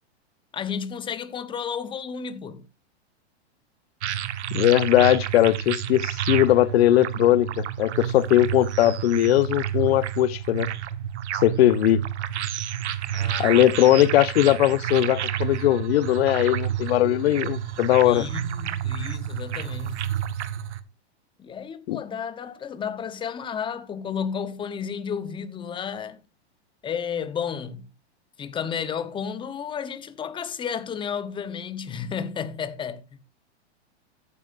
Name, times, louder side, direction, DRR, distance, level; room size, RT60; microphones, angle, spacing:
voice 1, 0.5-2.7 13.1-13.9 18.0-20.1 21.4-26.2 26.8-27.9 28.4-33.1, left 7 dB, 15° left, 0.9 m, -32 dB
sound 1, 4.0-20.8, right 10 dB, 80° right, 1.3 m, -30 dB
voice 2, 4.5-10.7 11.4-12.0 13.4-18.3 21.9-22.0, left 14 dB, 65° left, 0.8 m, -20 dB
14.0 x 9.4 x 2.6 m
hypercardioid pair, 135°, 34 cm